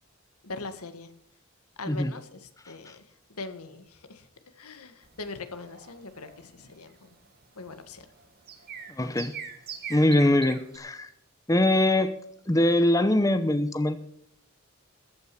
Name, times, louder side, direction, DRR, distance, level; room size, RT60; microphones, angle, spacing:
voice 1, 0.4-1.1 1.8-3.0 3.3-4.3 4.6-7.1 7.5-8.1, left 3 dB, 85° left, 10 dB, 1.6 m, -41 dB
sound 1, 5.0-10.8, right 7 dB, 45° right, 1.8 m, -43 dB
voice 2, 8.9-9.4 9.9-11.1 11.5-12.1 12.5-14.0, left 1 dB, 15° left, 10 dB, 0.7 m, -23 dB
14.5 x 9.3 x 5.9 m, 0.77 s
head